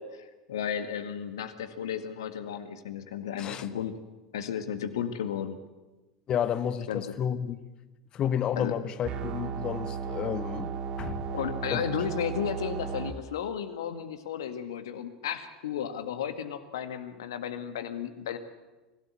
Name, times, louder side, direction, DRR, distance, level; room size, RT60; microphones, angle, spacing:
voice 1, 0.0-4.0 4.3-5.6 6.9-7.2 8.6-8.7 11.3-18.4, left 8 dB, 65° left, 1.8 m, -34 dB
voice 2, 6.3-7.6 8.1-10.7 11.0-11.3 11.7-11.8, left 9 dB, 35° left, 1.3 m, -31 dB
sound 1, 9.0-13.1, right 6 dB, 40° right, 2.4 m, -35 dB
25.5 x 17.0 x 8.5 m
figure-of-eight pair, 75°, 2 cm